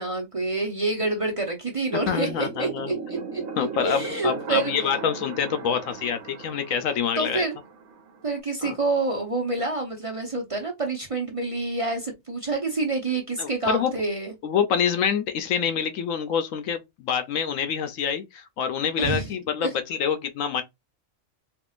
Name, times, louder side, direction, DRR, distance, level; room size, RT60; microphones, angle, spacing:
voice 1, 0.0-3.4 3.8-4.7 7.2-7.5 8.2-14.3 19.0-19.3 19.6-19.7, right 3 dB, 30° right, 0.7 m, -27 dB
sound 1, 1.9-8.4, right 5 dB, 80° right, 1.2 m, -38 dB
voice 2, 2.1-2.9 3.6-7.5 8.6-8.7 13.4-13.9 14.4-20.6, left 7 dB, 75° left, 1.0 m, -26 dB
3.6 x 2.9 x 2.4 m
omnidirectional pair, 1.4 m